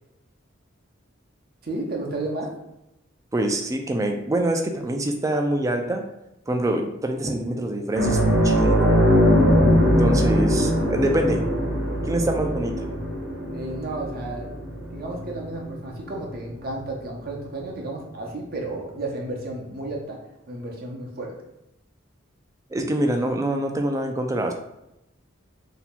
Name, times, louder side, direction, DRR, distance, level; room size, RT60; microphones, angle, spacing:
voice 1, 1.6-2.5 13.5-14.5 14.9-20.2 20.5-21.3, right 2 dB, 50° right, -1 dB, 0.7 m, -32 dB
voice 2, 3.3-6.0 6.5-8.9 9.8-11.4 12.0-12.8 22.7-24.5, right 1 dB, 15° right, 4 dB, 0.3 m, -25 dB
sound 1, 7.9-16.9 17.2-17.4 19.5-19.6, equal, 75° right, 1.0 m, -21 dB
2.8 x 2.2 x 4.1 m, 0.88 s
head